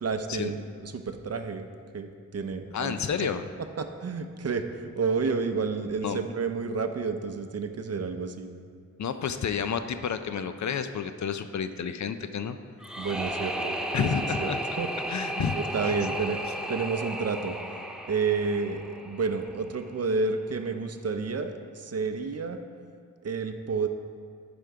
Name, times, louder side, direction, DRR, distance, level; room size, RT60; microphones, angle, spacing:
voice 1, 0.0-1.7 1.9-3.3 3.8-8.5 13.0-14.1 14.4-14.9 15.4-16.4 16.7-17.6 18.1-22.6 23.2-23.9, right 4 dB, 50° right, 7 dB, 0.5 m, -30 dB
voice 2, 2.7-3.4 6.0-6.2 9.0-12.6 13.9-14.6 15.1-15.6 15.8-15.9, left 7 dB, 65° left, 10 dB, 0.4 m, -30 dB
sound 1, 12.8-19.8, right 1 dB, ahead, 0.4 m, -34 dB
10.0 x 5.2 x 4.6 m, 2.1 s
wide cardioid pair, 130°, 32 cm